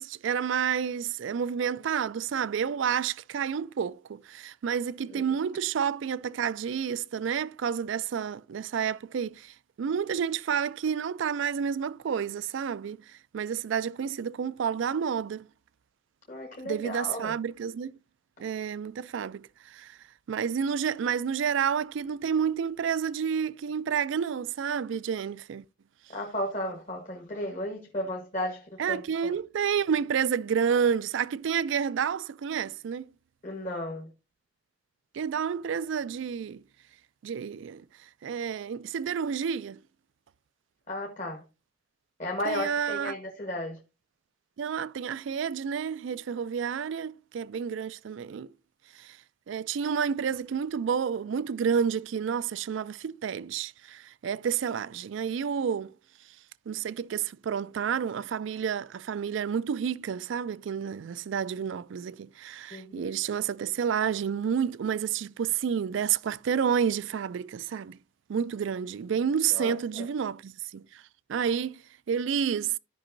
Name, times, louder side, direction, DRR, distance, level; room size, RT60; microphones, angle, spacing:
voice 1, 0.0-15.5 16.6-17.9 18.4-20.0 20.3-25.6 28.8-33.0 35.1-36.6 37.2-37.8 38.2-39.8 42.5-43.1 44.6-48.5 49.0-49.2 49.5-55.9 56.7-68.0 68.3-71.0 71.3-71.8 72.1-72.8, right 7 dB, 65° right, 0.3 m, -30 dB
voice 2, 16.3-17.3 26.1-29.3 33.4-34.1 40.9-41.4 42.2-43.8 62.7-63.1 69.5-70.0, left 1 dB, 35° left, 1.1 m, -34 dB
13.5 x 5.3 x 2.6 m
head